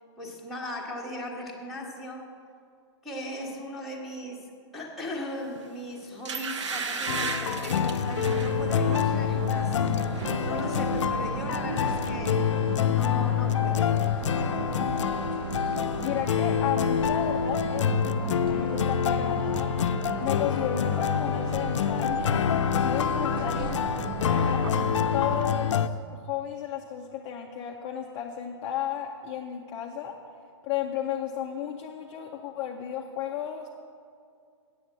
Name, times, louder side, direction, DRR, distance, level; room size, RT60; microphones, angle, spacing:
voice 1, 0.2-2.3 3.0-12.4 12.9-14.6 23.3-23.6, left 1 dB, ahead, -5 dB, 1.1 m, -38 dB
sound 1, 5.5-5.7 6.2-8.6 9.0-9.3 9.6-10.3 10.6-10.7, right 5 dB, 70° right, 0.9 m, -34 dB
sound 2, 7.1-25.9, left 8 dB, 75° left, 0.5 m, -27 dB
sound 3, 8.2-25.4, right 6 dB, 45° right, 0.5 m, -36 dB
voice 2, 16.0-19.9 20.2-23.8 24.3-24.7 25.1-30.2 30.6-33.7, left 9 dB, 15° left, 1 dB, 0.4 m, -33 dB
8.3 x 7.8 x 7.2 m, 2.3 s
hypercardioid pair, 165°, 16 cm